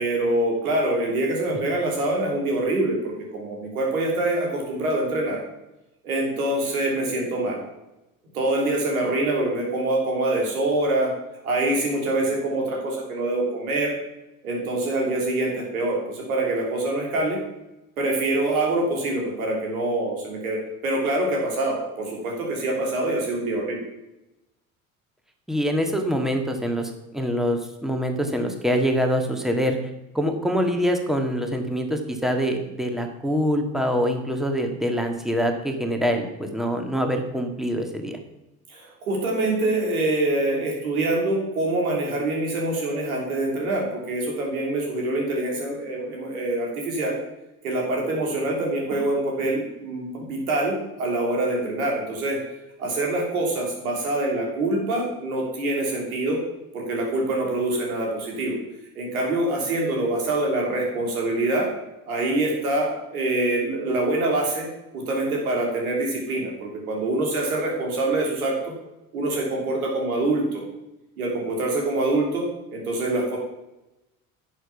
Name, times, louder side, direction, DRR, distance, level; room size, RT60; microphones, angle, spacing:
voice 1, 0.0-5.4 6.0-7.6 8.3-11.1 11.4-13.9 14.4-17.4 18.0-23.8 38.7-47.2 47.6-52.4 52.8-56.4 56.7-58.6 58.9-61.7 62.1-64.7 64.9-68.7 69.1-70.6 71.2-73.4, right 2 dB, 85° right, -1 dB, 3.1 m, -25 dB
voice 2, 25.5-29.8 30.1-38.2 59.9-60.0, equal, ahead, 4 dB, 1.8 m, -25 dB
10.5 x 6.5 x 5.9 m, 0.94 s
hypercardioid pair, 65°, 42 cm